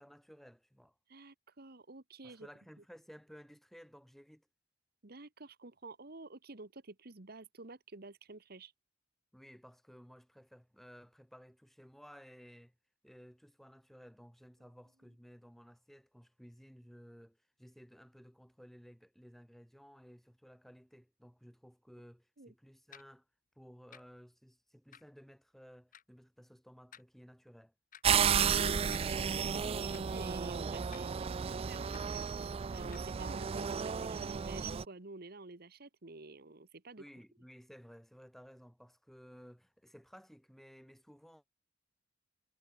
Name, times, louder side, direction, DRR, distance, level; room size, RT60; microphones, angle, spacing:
voice 1, 0.0-0.9 2.2-4.5 9.3-12.7 13.0-23.3 23.6-27.7 37.0-41.4, equal, ahead, 7.7 m, -57 dB
voice 2, 1.1-2.5 5.0-8.7 22.4-22.5 28.1-37.0, right 3 dB, 55° right, 1.5 m, -50 dB
sound 1, 22.9-23.1 23.9-24.0 24.9-25.1 25.9-26.0 26.9-27.1 27.9-28.0 28.9-29.1 29.9-30.0 30.9-31.0 31.9-32.0 32.9-33.1, left 9 dB, 45° left, 1.3 m, -55 dB
sound 2, 28.0-34.8, right 7 dB, 30° right, 0.3 m, -33 dB
head